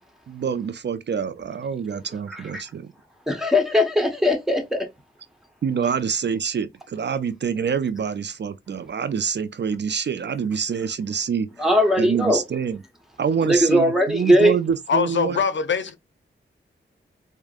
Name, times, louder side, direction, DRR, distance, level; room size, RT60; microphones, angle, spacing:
voice 1, 0.3-2.9 5.6-11.5 12.0-12.8 13.2-15.4, right 7 dB, 55° right, 0.4 m, -26 dB
voice 2, 2.3-2.6 3.3-4.9 11.6-12.4 13.4-14.6, left 1 dB, ahead, 1.2 m, -19 dB
voice 3, 14.9-16.0, left 6 dB, 65° left, 0.6 m, -22 dB
4.8 x 2.1 x 2.4 m
cardioid pair, 55°, 21 cm